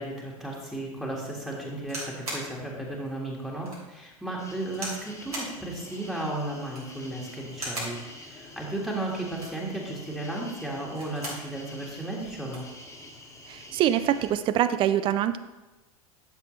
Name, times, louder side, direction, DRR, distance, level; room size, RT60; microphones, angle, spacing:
voice 1, 0.0-12.7, right 1 dB, ahead, -3 dB, 1.7 m, -34 dB
sound 1, 1.9-2.5 3.1-3.2 3.7-3.8 4.7-5.0 5.3-5.6 6.6-7.0 7.5-8.0 9.2-9.7 10.8-11.5 11.9-12.0 12.2-12.7 13.6-13.8, right 1 dB, 85° right, 3.4 m, -37 dB
sound 2, 4.4-14.3, left 1 dB, 15° left, 1.5 m, -47 dB
voice 2, 13.5-15.4, right 11 dB, 30° right, 13 dB, 0.3 m, -24 dB
12.0 x 6.6 x 3.2 m, 1.1 s
figure-of-eight pair, 85°, 19 cm